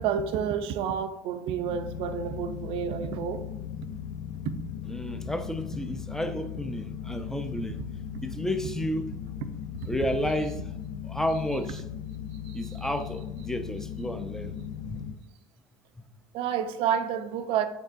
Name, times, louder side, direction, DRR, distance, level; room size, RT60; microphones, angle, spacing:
voice 1, 0.0-3.4 4.5-4.6 9.8-9.9 12.4-12.8 16.3-17.7, right 8 dB, 60° right, 0.5 m, -29 dB
sound 1, 1.6-15.1, left 9 dB, 80° left, 0.5 m, -38 dB
voice 2, 4.9-7.8 8.2-9.2 9.9-10.6 11.0-11.8 12.5-14.6 14.8-15.1 16.0-16.1, left 1 dB, 5° left, 0.5 m, -31 dB
5.3 x 3.7 x 2.5 m
hypercardioid pair, 70°, 10 cm